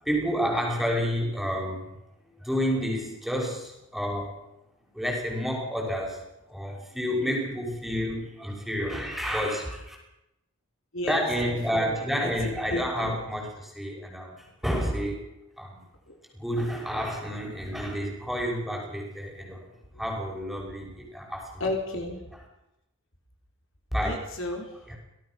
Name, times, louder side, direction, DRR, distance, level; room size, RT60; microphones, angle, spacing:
voice 1, 0.0-1.9 2.4-4.4 4.9-6.2 6.5-10.0 11.1-15.3 15.6-15.8 16.3-19.6 20.0-21.6 23.9-24.2 24.9-25.0, equal, ahead, -1 dB, 5.8 m, -30 dB
voice 2, 10.9-13.2 16.1-16.2 19.9-20.0 21.6-22.2 24.0-25.0, left 2 dB, 65° left, 2 dB, 4.4 m, -34 dB
25.5 x 18.0 x 6.1 m, 0.89 s
head